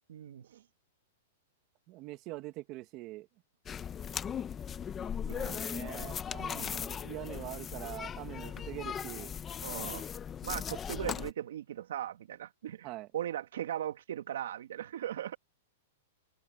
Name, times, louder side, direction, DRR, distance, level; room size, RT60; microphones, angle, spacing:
voice 1, 0.1-0.6 5.3-5.6 6.4-6.8 8.5-8.6 9.6-10.0 10.4-15.4, right 11 dB, 75° right, 2.5 m, -39 dB
voice 2, 1.9-3.3 5.2-9.3 12.8-13.1, right 18 dB, 30° right, 1.6 m, -44 dB
sound 1, 3.7-11.3, left 8 dB, 15° left, 0.8 m, -38 dB
supercardioid pair, 160°, 0 cm